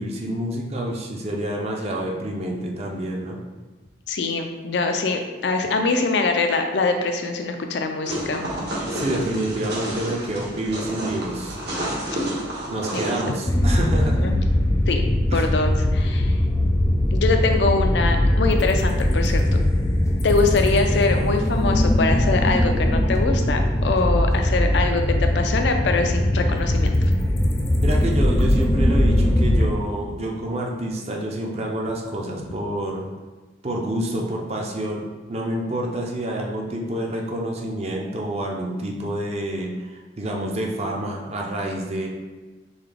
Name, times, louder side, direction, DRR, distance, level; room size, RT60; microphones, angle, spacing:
voice 1, 0.0-3.4 8.9-11.6 12.7-14.3 15.3-15.5 16.2-16.3 27.8-33.1 33.6-42.1, right 1 dB, 35° right, 0 dB, 0.6 m, -28 dB
voice 2, 4.1-8.5 13.3-13.4 14.2-14.4 14.9-15.0 15.3-16.4 17.1-19.4 20.2-27.1, left 3 dB, 80° left, 5 dB, 0.4 m, -23 dB
sound 1, 8.1-13.3, right 1 dB, 65° right, 1.1 m, -30 dB
sound 2, 13.5-29.7, left 1 dB, 15° left, 0.4 m, -20 dB
4.0 x 3.2 x 3.4 m, 1.3 s
head